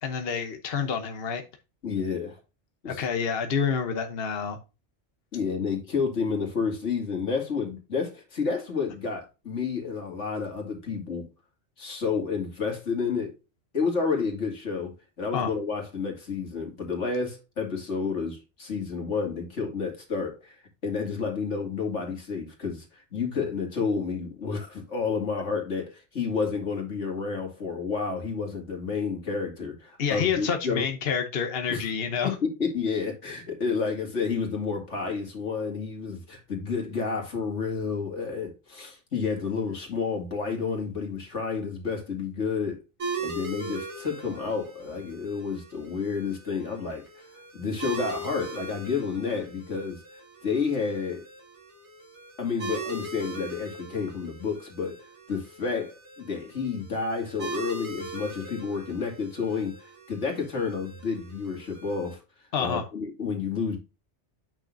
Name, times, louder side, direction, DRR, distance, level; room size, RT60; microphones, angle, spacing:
voice 1, 0.0-1.4 2.9-4.6 15.3-15.5 30.0-32.3 62.5-62.8, left 6 dB, 60° left, 1.1 m, -28 dB
voice 2, 1.8-2.4 2.8-3.0 5.3-11.3 11.8-13.3 13.7-20.6 20.8-30.9 31.7-31.9 32.2-42.8 43.2-47.3 47.5-50.0 50.4-51.3 52.4-62.2 62.6-63.8, left 5 dB, 85° left, 2.8 m, -30 dB
sound 1, 43.0-62.1, right 3 dB, 75° right, 3.3 m, -40 dB
8.8 x 6.3 x 2.6 m
omnidirectional pair, 1.2 m